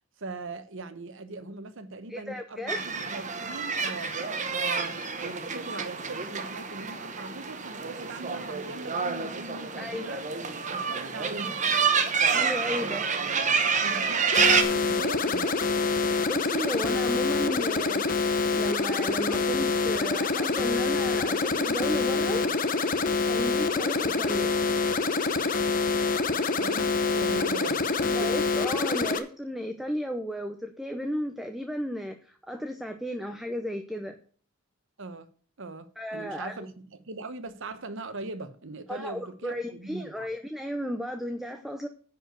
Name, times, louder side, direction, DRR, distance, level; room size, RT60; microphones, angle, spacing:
voice 1, 0.2-4.2 4.4-10.2 10.7-11.5 12.7-13.0 13.8-15.7 26.6-28.5 35.0-35.3 35.6-40.3, right 3 dB, 60° right, 1.0 m, -40 dB
voice 2, 2.1-2.8 9.8-10.2 12.3-13.0 16.2-18.1 18.5-22.4 23.3-24.6 28.0-34.2 36.0-36.6 38.9-41.9, equal, ahead, 0.6 m, -34 dB
sound 1, 2.7-14.6, right 5 dB, 35° right, 1.1 m, -28 dB
sound 2, 14.3-29.2, left 4 dB, 40° left, 0.8 m, -26 dB
10.0 x 4.7 x 8.0 m
head